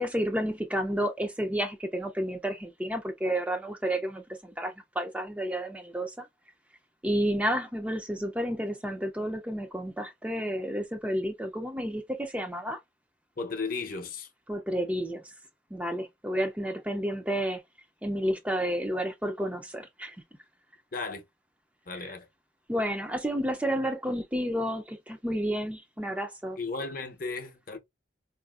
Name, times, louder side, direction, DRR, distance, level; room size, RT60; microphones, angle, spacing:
voice 1, 0.0-6.3 7.0-12.8 14.5-15.2 15.7-17.6 18.0-20.1 22.0-22.1 22.7-26.6, equal, 5° right, 0.4 m, -31 dB
voice 2, 13.4-14.3 20.9-21.2 21.9-22.3 26.6-27.8, left 4 dB, 50° left, 0.7 m, -35 dB
4.8 x 2.5 x 2.3 m
head